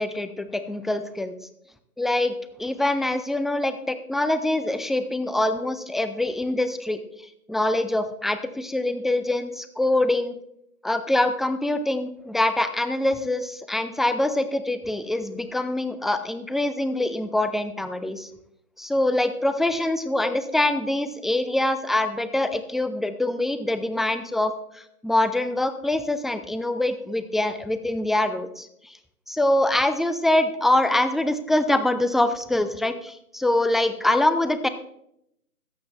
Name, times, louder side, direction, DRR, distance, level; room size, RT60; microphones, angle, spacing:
voice 1, 0.0-1.3 2.0-7.0 7.5-10.4 10.8-18.3 18.8-29.0 29.3-34.7, left 1 dB, ahead, 10 dB, 0.4 m, -24 dB
14.0 x 9.3 x 3.2 m, 0.76 s
figure-of-eight pair, 165°, 46 cm